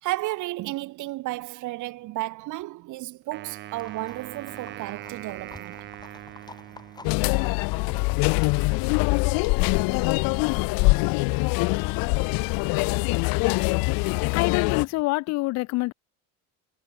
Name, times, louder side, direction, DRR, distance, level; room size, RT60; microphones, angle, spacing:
voice 1, 0.0-5.9, right 18 dB, 50° right, 2.3 m, -33 dB
Wind instrument woodwind instrument, 3.3-7.6, right 14 dB, 30° right, 0.5 m, -42 dB
Livestock farm animals working animals, 3.8-15.0, left 3 dB, 10° left, 4.7 m, -51 dB
sound 1, 7.0-14.8, left 28 dB, 65° left, 0.8 m, -23 dB
voice 2, 14.3-15.9, left 21 dB, 45° left, 0.4 m, -26 dB
cardioid pair, 175°, 37 cm